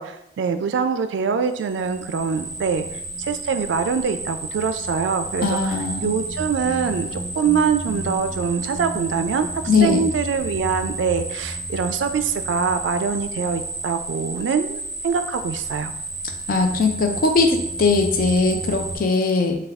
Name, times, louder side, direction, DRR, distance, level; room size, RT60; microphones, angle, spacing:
voice 1, 0.0-15.9, right 6 dB, 80° right, 9 dB, 0.3 m, -24 dB
sound 1, 1.6-19.0, right 2 dB, 10° right, 0.6 m, -31 dB
voice 2, 5.4-6.1 9.7-10.0 16.5-19.6, left 4 dB, 50° left, 4 dB, 0.4 m, -20 dB
3.4 x 2.3 x 3.4 m, 0.81 s
head